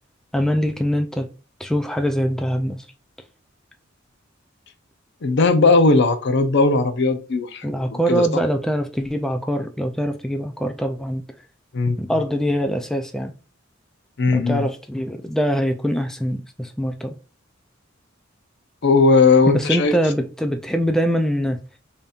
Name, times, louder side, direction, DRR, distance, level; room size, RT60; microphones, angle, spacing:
voice 1, 0.3-1.3 1.6-2.9 7.6-11.2 12.0-13.3 14.3-17.1 19.5-21.6, equal, 5° left, 0.3 m, -23 dB
voice 2, 5.2-8.4 11.7-12.0 14.2-14.7 18.8-19.9, left 3 dB, 60° left, 0.5 m, -18 dB
5.1 x 2.8 x 2.3 m
head